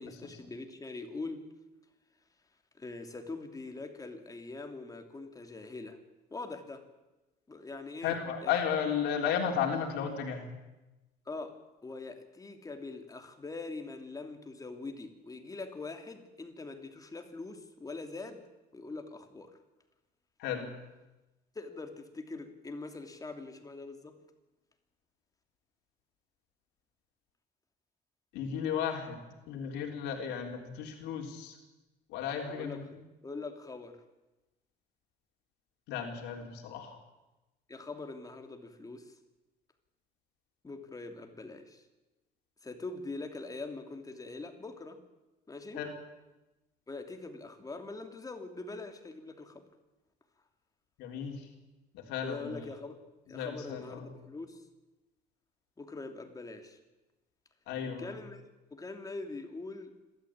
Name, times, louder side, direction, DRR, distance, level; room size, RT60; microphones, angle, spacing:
voice 1, 0.0-1.5 2.8-6.0 6.3-6.8 7.5-8.5 11.3-18.4 18.7-19.6 21.5-24.2 32.5-32.9 33.2-34.0 37.7-39.2 40.6-41.8 42.6-45.0 45.5-45.8 46.9-49.7 52.2-54.6 55.8-56.8 57.8-58.4 58.7-60.0, left 3 dB, 20° left, 6 dB, 2.9 m, -43 dB
voice 2, 8.0-10.5 20.4-20.7 28.3-31.6 32.1-32.9 35.9-37.0 45.8-45.9 51.0-51.5 51.9-52.6 53.3-54.1 57.7-58.2, left 7 dB, 90° left, 2 dB, 3.8 m, -34 dB
28.0 x 13.5 x 8.8 m, 1.1 s
cardioid pair, 110°, 17 cm